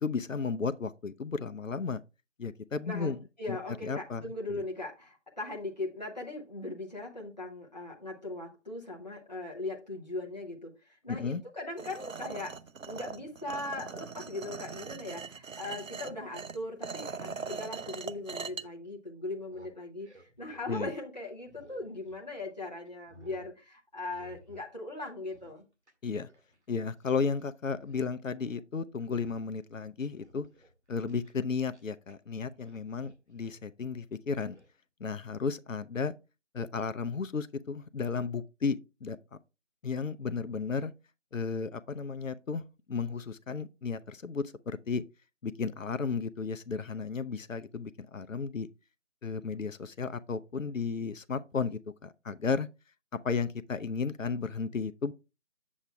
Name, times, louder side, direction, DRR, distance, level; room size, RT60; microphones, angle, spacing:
voice 1, 0.0-2.0 2.4-3.2 3.5-3.6 3.8-4.2 4.5-4.6 11.1-11.4 20.7-20.9 26.0-26.3 26.7-30.5 30.9-34.6 35.0-36.1 36.5-39.2 39.8-40.9 41.3-42.6 42.9-45.0 45.4-48.7 49.2-52.7 53.2-55.1, left 5 dB, 85° left, 0.6 m, -33 dB
voice 2, 2.8-12.6 12.9-25.6, left 2 dB, 35° left, 0.7 m, -39 dB
sound 1, 11.8-18.6, right 5 dB, 85° right, 0.6 m, -41 dB
sound 2, 19.3-22.5 22.9-23.5 24.1-24.7 25.0-27.4 27.7-28.1 28.4-28.6 29.0-29.6 30.0-32.1 32.4-33.7 34.5-34.7, equal, 60° right, 1.9 m, -58 dB
8.6 x 7.1 x 2.2 m
figure-of-eight pair, 170°, 38 cm